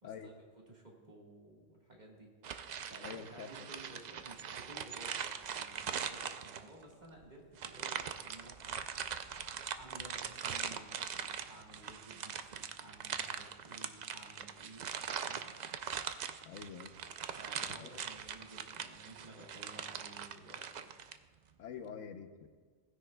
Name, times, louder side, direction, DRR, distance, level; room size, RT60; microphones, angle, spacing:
voice 1, 0.0-2.3 2.9-9.4 9.7-14.9 15.2-15.5 17.3-20.9, right 1 dB, 35° right, -2 dB, 1.7 m, -55 dB
sound 1, 2.4-6.8 7.6-21.2, right 7 dB, 75° right, 0.4 m, -41 dB
voice 2, 3.0-3.5 16.4-16.9 17.8-17.9 21.6-22.5, left 7 dB, 80° left, 8 dB, 1.1 m, -46 dB
18.0 x 9.8 x 2.2 m, 1.6 s
omnidirectional pair, 1.3 m